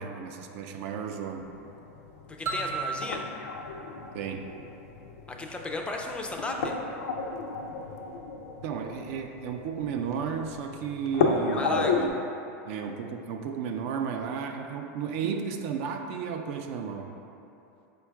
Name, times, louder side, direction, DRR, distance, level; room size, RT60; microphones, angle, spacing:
voice 1, 0.0-1.4 4.1-4.4 8.6-12.1 12.7-17.1, right 6 dB, 60° right, 4 dB, 0.4 m, -33 dB
sound 1, 1.4-12.1, left 4 dB, 80° left, 0.4 m, -33 dB
voice 2, 2.3-3.2 5.4-6.7 11.5-12.1, left 2 dB, 15° left, 1 dB, 0.3 m, -34 dB
sound 2, 2.5-5.2, right 3 dB, 30° right, 0.8 m, -36 dB
4.4 x 2.3 x 4.5 m, 2.8 s
supercardioid pair, 120°, 8 cm